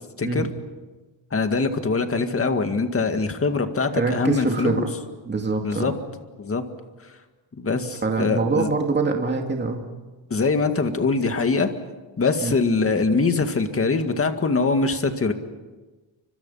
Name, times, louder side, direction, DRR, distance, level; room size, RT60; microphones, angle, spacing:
voice 1, 0.2-0.5 1.3-4.8 5.6-5.9 6.4-6.6 7.6-8.7 10.3-11.7 12.2-15.3, left 4 dB, 30° left, 7 dB, 2.0 m, -23 dB
voice 2, 3.9-4.9 5.2-5.9 7.7-9.9 12.4-12.5, right 3 dB, 20° right, 2 dB, 2.5 m, -24 dB
30.0 x 25.5 x 5.7 m, 1.2 s
wide cardioid pair, 145°, 47 cm